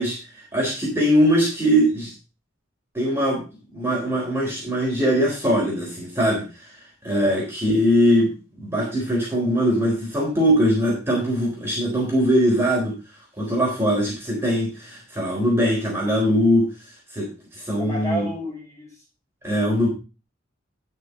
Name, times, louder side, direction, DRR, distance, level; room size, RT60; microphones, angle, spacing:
voice 1, 0.0-2.1 2.9-3.4 3.7-6.5 7.0-12.9 13.4-16.7 17.1-18.3 19.4-19.9, equal, 15° right, -4 dB, 3.9 m, -21 dB
voice 2, 17.8-19.0, right 1 dB, 15° left, -3 dB, 5.7 m, -32 dB
11.5 x 6.1 x 5.2 m, 0.31 s
head